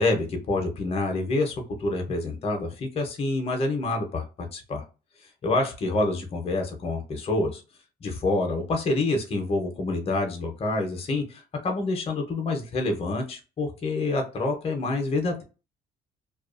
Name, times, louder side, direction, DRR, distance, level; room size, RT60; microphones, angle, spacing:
voice 1, 0.0-1.5 1.8-4.8 5.4-7.6 8.0-15.4, left 2 dB, 35° left, 0.8 m, -27 dB
2.3 x 2.3 x 2.4 m
cardioid pair, 110°, 17 cm